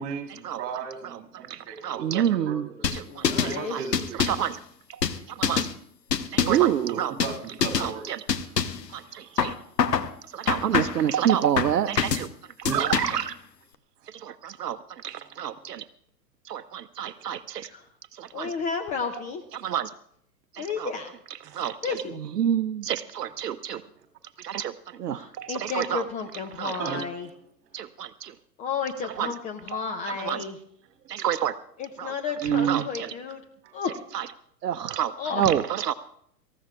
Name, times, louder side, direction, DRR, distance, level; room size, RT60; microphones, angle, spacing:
voice 1, 0.0-2.9 3.3-4.4 6.9-8.1 8.9-9.5 12.6-12.9 15.1-15.3 15.5-15.6 17.1-17.2 21.4-21.6 24.0-24.1 26.7-27.1 33.6-33.8, right 6 dB, 30° right, 2 dB, 2.7 m, -37 dB
voice 2, 1.5-3.2 3.7-3.8 4.2-4.6 5.5-5.6 6.3-7.1 7.8-8.2 8.9-9.5 10.3-12.3 12.6-13.3 14.2-14.8 15.0-15.8 16.5-17.7 18.2-18.5 19.5-19.9 20.5-20.9 21.5-21.9 22.3-23.8 24.4-24.7 25.0-26.1 26.6-26.8 27.7-28.3 29.2-29.3 30.2-30.4 31.1-31.5 32.0-32.1 32.4-33.1 34.1-34.3 34.6-35.9, right 10 dB, 75° right, 12 dB, 0.7 m, -27 dB
sound 1, 2.8-3.5 3.9-4.5 5.0-5.7 6.1-6.7 7.2-7.4 7.6-7.9 8.3-8.8 9.4-10.1 10.5-11.1 11.6-12.3 12.6-13.3, left 7 dB, 80° left, 1.1 m, -25 dB
voice 3, 3.0-3.9 17.7-17.8 18.3-19.4 20.6-21.1 21.8-22.2 25.1-27.3 28.6-30.6 31.8-33.4 33.7-34.0 35.2-35.5, left 5 dB, 15° left, 5 dB, 0.5 m, -32 dB
26.0 x 14.5 x 2.4 m, 0.70 s
figure-of-eight pair, 105°, 49 cm